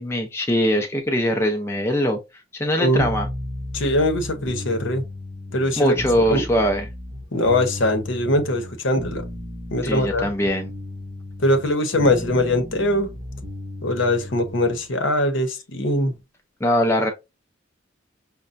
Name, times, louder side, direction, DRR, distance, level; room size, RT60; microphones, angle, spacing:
voice 1, 0.0-2.2 2.5-3.3 5.8-6.9 9.8-10.7 16.6-17.1, equal, 10° left, 0.5 m, -21 dB
sound 1, 3.0-14.8, left 1 dB, 30° right, 0.8 m, -34 dB
voice 2, 3.7-5.0 5.5-5.9 6.3-6.4 7.3-9.2 9.7-10.3 11.4-13.1 13.8-16.1, left 1 dB, 70° left, 0.8 m, -21 dB
5.4 x 2.2 x 2.5 m
head